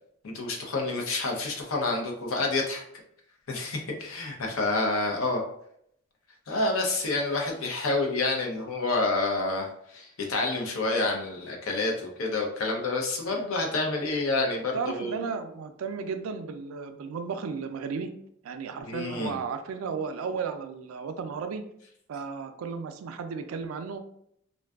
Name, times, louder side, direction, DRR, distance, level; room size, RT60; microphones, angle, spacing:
voice 1, 0.2-2.8 3.5-5.4 6.5-15.3 18.8-19.4, left 2 dB, 90° left, 1 dB, 0.6 m, -28 dB
voice 2, 14.7-18.1 18.4-21.6 22.1-24.0, right 5 dB, 85° right, 8 dB, 0.3 m, -34 dB
2.5 x 2.3 x 2.3 m, 0.71 s
head